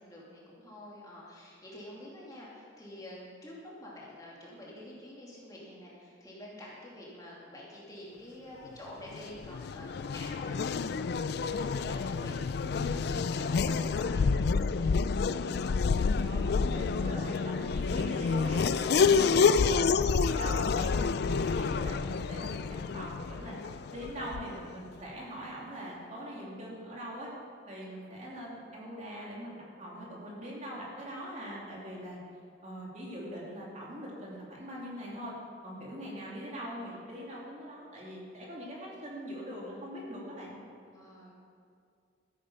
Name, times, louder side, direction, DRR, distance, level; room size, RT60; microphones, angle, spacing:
voice 1, 0.0-15.8 19.2-19.3 27.8-27.9 40.9-41.3, left 1 dB, 20° left, -6 dB, 2.7 m, -48 dB
Race car auto racing / Accelerating revving vroom, 9.1-24.7, left 5 dB, 60° left, 0.4 m, -29 dB
voice 2, 12.6-13.0 16.2-23.6 23.9-27.3 27.7-32.2 32.6-35.3 35.6-40.6, equal, 40° right, -4 dB, 2.7 m, -42 dB
13.5 x 9.4 x 5.6 m, 2.3 s
head